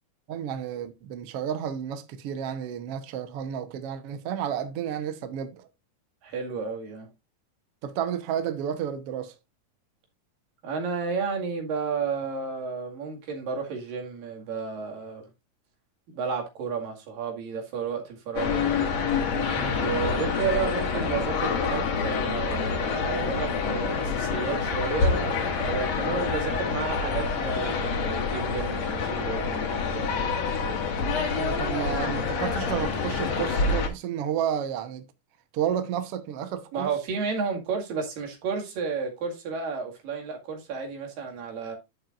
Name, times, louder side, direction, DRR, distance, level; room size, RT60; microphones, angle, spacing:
voice 1, 0.3-5.7 7.8-9.4 19.6-19.8 31.3-35.1 35.5-36.9, right 9 dB, 65° right, 1.6 m, -31 dB
voice 2, 6.2-7.1 10.6-15.3 16.1-18.8 19.7-30.3 36.7-41.8, right 5 dB, 90° right, 3.8 m, -32 dB
sound 1, 18.4-33.9, left 5 dB, 60° left, 2.6 m, -27 dB
10.5 x 7.5 x 2.5 m
omnidirectional pair, 3.8 m